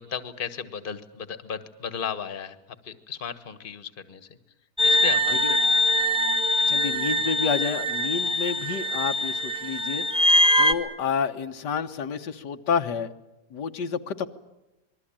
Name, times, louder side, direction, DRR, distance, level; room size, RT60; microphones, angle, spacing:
voice 1, 0.0-2.6 2.8-4.3 4.8-5.7 5.9-6.0, left 7 dB, 35° left, 12 dB, 1.4 m, -35 dB
sound 1, 4.8-10.7, left 1 dB, 5° right, 1.4 m, -23 dB
voice 2, 6.7-10.0 10.6-13.1 13.5-14.3, left 6 dB, 85° left, 6 dB, 1.8 m, -29 dB
26.5 x 21.0 x 8.8 m, 0.95 s
omnidirectional pair, 1.8 m